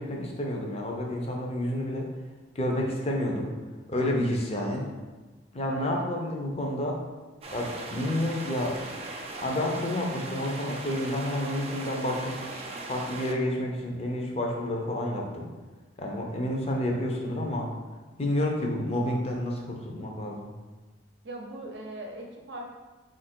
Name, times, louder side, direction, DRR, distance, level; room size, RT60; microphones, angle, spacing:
voice 1, 0.0-2.1 2.6-3.5 3.9-4.8 5.5-7.0 7.5-8.8 9.4-12.4 12.9-15.5 16.0-17.7 18.2-20.5, left 1 dB, 35° left, 0 dB, 0.6 m, -29 dB
sound 1, 7.4-13.3, right 2 dB, 30° right, 0.4 m, -39 dB
voice 2, 21.2-22.7, right 1 dB, 65° right, 1 dB, 0.7 m, -40 dB
4.3 x 2.5 x 4.3 m, 1.3 s
head